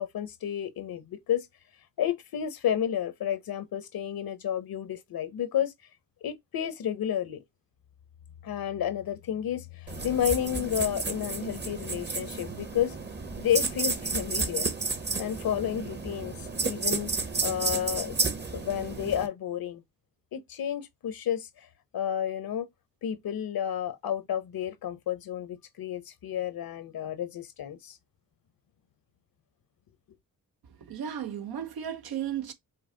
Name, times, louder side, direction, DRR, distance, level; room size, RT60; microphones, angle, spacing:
voice 1, 0.0-1.5 2.0-5.7 6.2-7.4 8.4-12.9 13.4-14.7 15.2-16.4 16.6-17.1 17.4-18.2 18.5-19.8 20.3-21.5 21.9-22.7 23.0-28.0, left 10 dB, 75° left, 0.9 m, -31 dB
sound 1, 9.9-19.3, right 3 dB, 30° right, 0.8 m, -32 dB
voice 2, 30.9-32.5, right 9 dB, 80° right, 0.8 m, -34 dB
5.4 x 2.0 x 3.8 m
cardioid pair, 80°, 36 cm